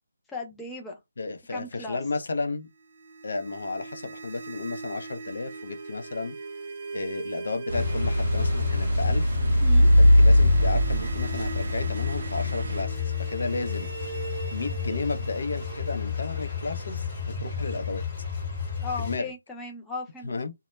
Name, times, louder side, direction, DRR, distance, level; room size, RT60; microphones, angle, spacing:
voice 1, 0.3-1.0 1.5-2.0 9.6-9.9 18.8-20.3, left 3 dB, 5° left, 0.4 m, -36 dB
voice 2, 1.2-2.7 3.2-6.4 6.9-9.3 10.0-13.9 14.5-17.0 17.4-18.0 19.0-19.3 20.2-20.5, left 3 dB, 70° left, 0.5 m, -33 dB
sound 1, 2.8-17.7, right 4 dB, 35° right, 0.7 m, -41 dB
sound 2, 7.7-19.2, left 7 dB, 25° left, 1.1 m, -32 dB
sound 3, 7.7-12.8, equal, 70° right, 0.4 m, -21 dB
2.1 x 2.1 x 3.0 m
hypercardioid pair, 165°, 0 cm